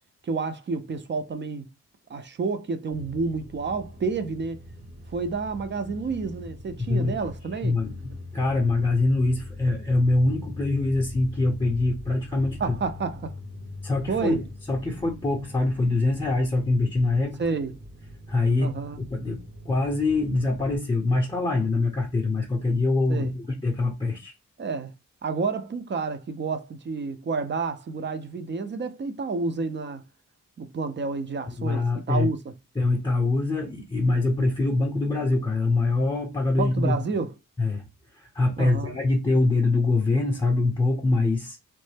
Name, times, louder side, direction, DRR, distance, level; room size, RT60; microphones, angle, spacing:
voice 1, 0.2-1.7 2.1-4.6 5.1-7.8 12.6-13.4 14.1-14.4 17.4-17.7 18.6-19.0 23.1-23.3 24.6-24.9 25.2-30.0 30.6-32.4 36.6-37.3 38.6-39.0, right 4 dB, 35° right, 0.5 m, -30 dB
sound 1, 2.9-20.8, left 2 dB, 70° right, 1.6 m, -42 dB
voice 2, 6.8-7.2 7.6-12.6 13.8-17.4 18.3-18.7 19.1-24.3 31.6-32.3 32.8-37.0 37.6-37.8 38.1-41.6, left 2 dB, 15° left, 0.6 m, -24 dB
3.1 x 2.0 x 3.2 m
wide cardioid pair, 115°, 32 cm